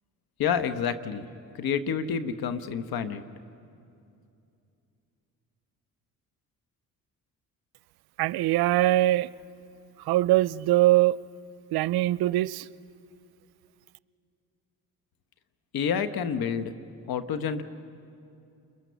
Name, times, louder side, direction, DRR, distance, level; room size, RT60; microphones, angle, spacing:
voice 1, 0.4-1.2 1.5-3.2 15.7-16.7 17.1-17.6, left 7 dB, 75° left, 10 dB, 1.3 m, -28 dB
voice 2, 8.2-9.3 10.1-11.2 11.7-12.7, right 16 dB, 85° right, 18 dB, 0.5 m, -22 dB
29.5 x 22.0 x 7.0 m, 2.6 s
cardioid pair, 70°, 36 cm